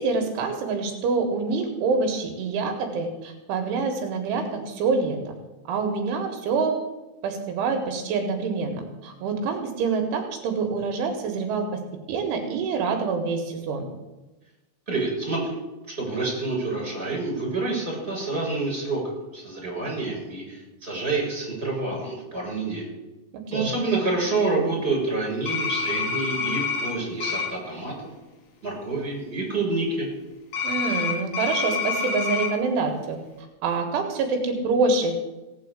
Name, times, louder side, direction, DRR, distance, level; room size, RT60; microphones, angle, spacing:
voice 1, 0.0-5.3 5.7-6.8 7.2-11.8 12.1-13.8 23.3-23.7 30.6-33.2 33.6-35.2, right 4 dB, 80° right, 4 dB, 4.0 m, -26 dB
voice 2, 14.9-15.5 15.9-19.0 19.3-22.9 23.5-27.9 28.6-30.1, right 3 dB, 10° right, -2 dB, 6.5 m, -28 dB
sound 1, 25.5-26.9 27.2-27.5 30.5-32.5, left 5 dB, 60° left, 4.4 m, -27 dB
17.0 x 8.1 x 8.2 m, 1.1 s
omnidirectional pair, 5.5 m